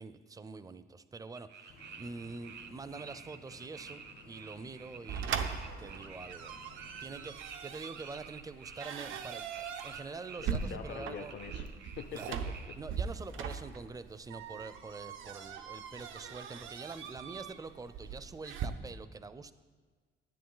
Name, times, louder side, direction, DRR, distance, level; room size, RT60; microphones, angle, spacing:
voice 1, 0.0-6.5 7.0-11.3 12.1-12.3 12.7-19.5, right 4 dB, 20° right, 13 dB, 0.5 m, -45 dB
sound 1, 1.3-12.8, right 6 dB, 60° right, 1.0 m, -50 dB
sound 2, 1.7-7.3, left 4 dB, 85° left, 2.0 m, -57 dB
sound 3, 5.1-18.7, right 7 dB, 85° right, 0.8 m, -40 dB
voice 2, 10.4-12.2, left 7 dB, 60° left, 6 dB, 0.6 m, -44 dB
10.0 x 10.0 x 3.9 m, 1.5 s
cardioid pair, 90°, 20 cm